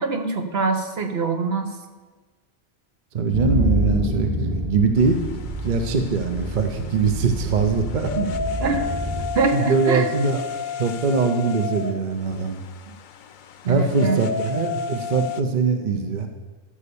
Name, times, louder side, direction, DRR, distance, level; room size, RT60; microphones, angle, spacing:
voice 1, 0.0-1.7 8.2-8.3 8.6-8.9 9.3-10.1 13.6-14.2, right 4 dB, 70° right, 5 dB, 1.2 m, -24 dB
voice 2, 3.1-5.2 5.6-8.1 9.5-12.6 13.7-16.3, right 4 dB, 50° right, 5 dB, 0.9 m, -22 dB
sound 1, 3.3-9.3, equal, 85° right, 4.4 m, -28 dB
sound 2, 5.0-15.4, left 6 dB, 55° left, 0.6 m, -33 dB
13.5 x 5.5 x 6.9 m, 1.3 s
omnidirectional pair, 1.1 m